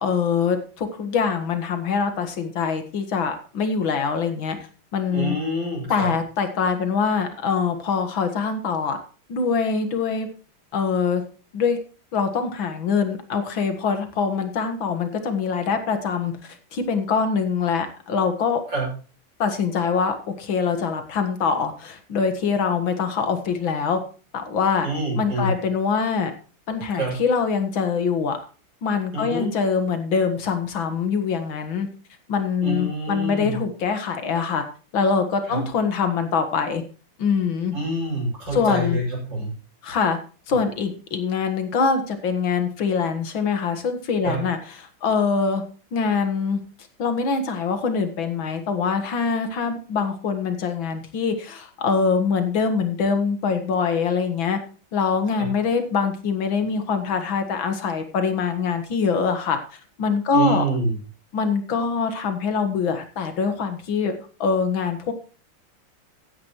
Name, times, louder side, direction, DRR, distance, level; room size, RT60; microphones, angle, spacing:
voice 1, 0.0-4.6 4.9-5.4 5.9-9.0 9.3-10.3 10.7-11.2 11.5-11.8 12.1-18.6 19.4-24.0 24.3-24.9 25.2-26.3 26.7-28.4 28.8-31.9 32.3-34.6 34.9-36.8 37.2-37.7 38.5-39.0 39.8-40.2 40.5-45.6 45.9-46.6 47.0-54.6 54.9-59.6 60.0-60.6 61.3-64.1 64.4-65.1, left 5 dB, 70° left, 7 dB, 2.3 m, -24 dB
voice 2, 5.1-6.1 18.7-18.9 24.8-25.5 26.9-27.1 29.1-29.5 32.6-33.6 35.5-35.6 37.7-39.5 44.2-44.4 55.4-55.5 60.3-61.0, right 1 dB, 60° right, -3 dB, 7.3 m, -26 dB
15.0 x 9.7 x 3.1 m, 0.37 s
omnidirectional pair, 2.2 m